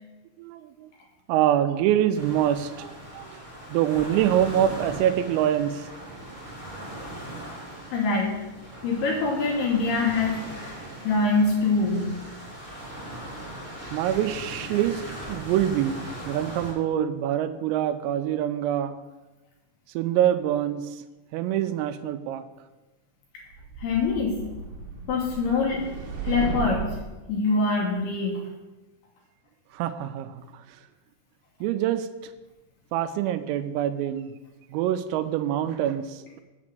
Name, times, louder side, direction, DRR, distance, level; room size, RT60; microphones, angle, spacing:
voice 1, 0.4-0.9 1.3-3.4 3.7-5.9 13.9-15.0 15.3-18.9 19.9-21.0 21.3-22.4 29.7-30.5 31.6-32.1 32.9-34.3 34.7-36.4, right 11 dB, 90° right, 11 dB, 3.3 m, -25 dB
sound 1, 2.1-16.7, right 1 dB, 35° right, 0.9 m, -39 dB
voice 2, 7.9-8.4 8.8-10.8 11.0-12.2 23.8-24.4 25.1-25.8 26.2-27.0 27.3-28.4, left 3 dB, 70° left, -1 dB, 2.6 m, -24 dB
sound 2, 23.5-27.2, right 4 dB, 70° right, 2.2 m, -34 dB
7.6 x 6.2 x 7.4 m, 1.1 s
omnidirectional pair, 5.9 m